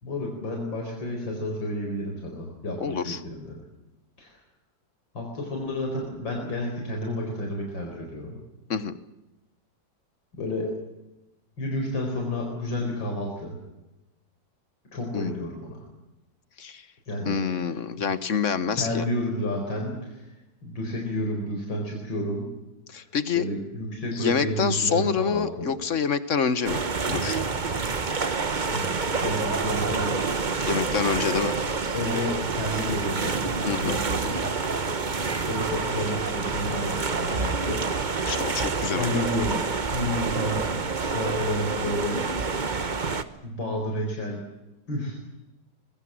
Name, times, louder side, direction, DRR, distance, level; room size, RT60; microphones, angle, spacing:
voice 1, 0.0-3.6 4.2-4.4 5.1-8.4 10.4-10.7 11.6-13.6 14.9-15.8 17.1-17.4 18.7-20.3 20.6-22.5 23.0-23.1 23.4-25.7 28.7-28.9 29.2-30.3 31.5-31.7 31.9-34.4 35.1-37.8 38.8-39.6 39.9-42.2 43.4-44.4 44.9-45.2, left 1 dB, 85° left, 1 dB, 5.4 m, -31 dB
voice 2, 2.8-3.2 8.7-9.0 15.1-15.4 16.6-16.8 17.2-19.1 22.9-23.4 24.1-26.8 27.1-27.4 30.6-31.5 33.6-34.0 38.2-39.3, left 6 dB, 45° left, 14 dB, 1.3 m, -27 dB
sound 1, 26.6-43.2, right 4 dB, 30° right, 1.0 m, -28 dB
24.5 x 22.0 x 7.8 m, 0.98 s
omnidirectional pair, 2.0 m